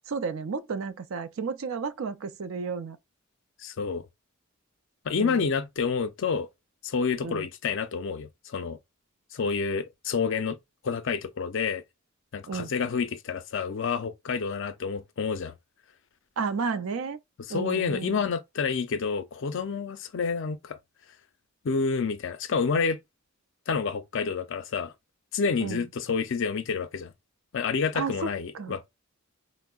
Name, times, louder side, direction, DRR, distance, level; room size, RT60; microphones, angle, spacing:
voice 1, 0.1-3.0 5.2-5.5 7.2-7.5 12.5-12.7 16.4-17.2 17.5-18.2 25.6-25.8 27.9-28.8, right 5 dB, 70° right, 0.4 m, -32 dB
voice 2, 3.6-4.0 5.0-6.5 6.8-8.8 9.3-10.6 10.8-11.8 12.3-15.5 17.5-20.8 21.6-23.0 23.7-24.9 25.3-27.1 27.5-28.9, left 5 dB, 60° left, 0.5 m, -29 dB
4.4 x 2.0 x 2.3 m
head